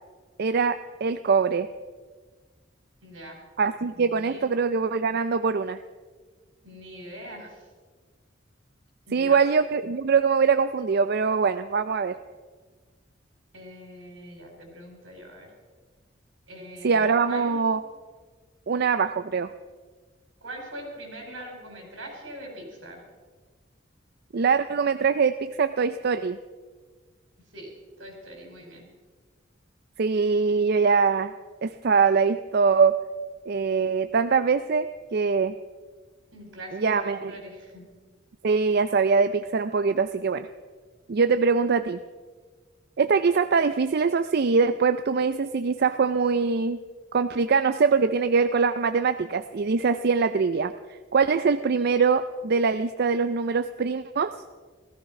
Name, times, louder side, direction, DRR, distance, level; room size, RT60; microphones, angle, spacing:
voice 1, 0.4-1.7 3.6-5.8 9.1-12.1 16.8-17.8 18.7-19.5 24.3-26.4 30.0-31.3 31.6-32.9 33.5-35.5 36.7-37.3 38.4-40.5 41.1-42.0 43.0-46.8 47.1-50.7 51.1-54.3, right 5 dB, 55° right, 11 dB, 0.5 m, -23 dB
voice 2, 3.0-3.4 3.9-4.4 6.6-7.7 9.1-9.4 13.5-15.5 16.5-17.6 20.4-23.0 27.5-27.7 28.0-28.8 36.3-37.8, right 1 dB, 80° right, 2 dB, 4.9 m, -42 dB
16.0 x 14.5 x 5.9 m, 1.4 s
head